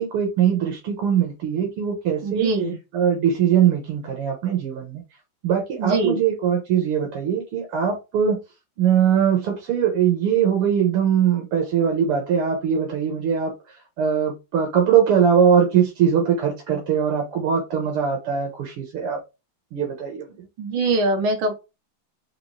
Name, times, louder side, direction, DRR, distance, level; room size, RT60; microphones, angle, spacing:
voice 1, 0.0-2.5 2.9-5.0 5.4-8.4 8.8-13.5 14.0-19.2 19.7-20.5, right 8 dB, 90° right, 2.2 m, -21 dB
voice 2, 2.2-2.8 5.8-6.2 20.6-21.5, right 3 dB, 75° right, 2.0 m, -22 dB
5.1 x 3.4 x 2.8 m
omnidirectional pair, 2.4 m